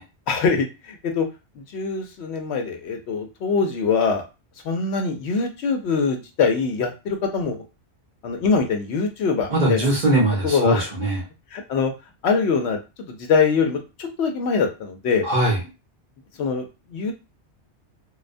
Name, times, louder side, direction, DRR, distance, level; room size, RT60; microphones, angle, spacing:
voice 1, 0.3-1.3 1.6-4.2 4.6-7.6 8.2-9.9 10.4-10.9 11.5-11.9 12.2-15.3 16.4-16.6 16.9-17.1, left 5 dB, 75° left, 4 dB, 0.8 m, -23 dB
voice 2, 9.5-11.2 15.2-15.6, right 1 dB, 50° right, -4 dB, 0.7 m, -21 dB
2.3 x 2.1 x 2.5 m, 0.28 s
omnidirectional pair, 1.2 m